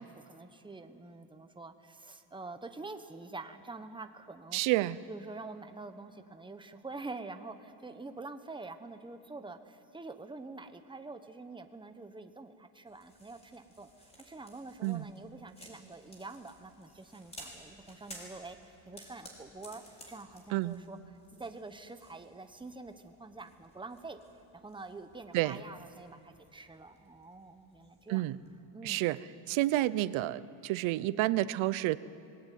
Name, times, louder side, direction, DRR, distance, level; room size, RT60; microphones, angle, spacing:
voice 1, 0.0-4.6 5.1-13.9 14.3-24.2 24.5-28.2 28.7-29.0, right 3 dB, 10° right, 8 dB, 1.2 m, -46 dB
voice 2, 4.5-5.0 14.8-15.1 20.5-20.8 25.3-25.6 28.1-28.4 28.8-29.2 29.5-32.0, right 16 dB, 85° right, 17 dB, 0.8 m, -29 dB
sound 1, 12.9-28.6, equal, 15° left, 5.6 m, -56 dB
25.5 x 20.5 x 9.3 m, 2.9 s
cardioid pair, 130°, 46 cm